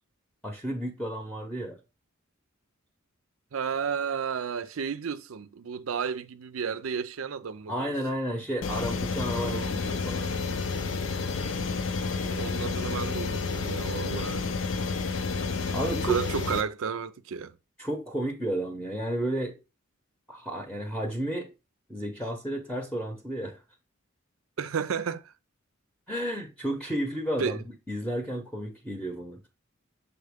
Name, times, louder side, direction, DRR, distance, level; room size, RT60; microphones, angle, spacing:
voice 1, 0.4-1.8 7.7-10.4 15.7-16.2 17.8-19.6 20.3-21.5 21.9-23.6 26.1-29.4, right 1 dB, 5° left, 0.7 m, -32 dB
voice 2, 3.5-7.7 9.4-9.9 12.2-14.4 16.0-17.5 24.6-25.3 27.4-27.6, right 6 dB, 85° right, 0.5 m, -32 dB
sound 1, 8.6-16.6, left 4 dB, 65° left, 0.6 m, -30 dB
6.5 x 4.1 x 3.5 m
head